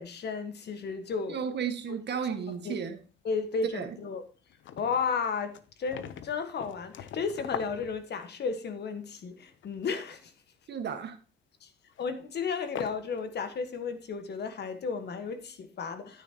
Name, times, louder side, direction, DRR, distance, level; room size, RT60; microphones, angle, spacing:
voice 1, 0.0-1.5 2.6-2.8 3.2-4.2 4.8-10.3 11.6-11.7 12.0-16.2, left 5 dB, 55° left, 1.5 m, -33 dB
voice 2, 1.3-3.0 3.7-3.9 10.7-11.2, right 7 dB, 60° right, 1.7 m, -33 dB
Sorting Stones, 2.5-3.2 3.5-3.6 4.0-4.1 4.3-8.6 9.5-10.2 10.6-10.9 11.9-12.0 12.6-13.3 13.7-13.8, left 10 dB, 75° left, 0.8 m, -43 dB
9.6 x 9.2 x 2.9 m
cardioid pair, 90°, 20 cm